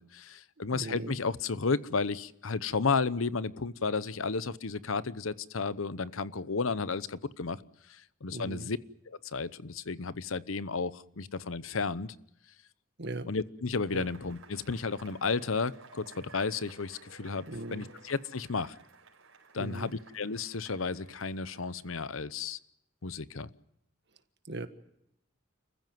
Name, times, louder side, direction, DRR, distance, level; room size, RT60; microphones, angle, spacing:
voice 1, 0.0-7.6 7.9-8.8 9.1-12.1 13.3-17.4 17.7-18.7 19.5-22.6 23.0-23.5, left 4 dB, 75° left, 16 dB, 0.9 m, -33 dB
voice 2, 0.6-1.2 8.3-8.7 13.0-13.3 13.9-14.1 17.5-17.8 19.5-19.9 24.5-24.7, right 2 dB, 55° right, 10 dB, 1.6 m, -39 dB
Cheering / Applause / Crowd, 13.8-22.5, right 4 dB, 75° right, 4.9 m, -56 dB
29.0 x 15.5 x 9.3 m, 0.79 s
head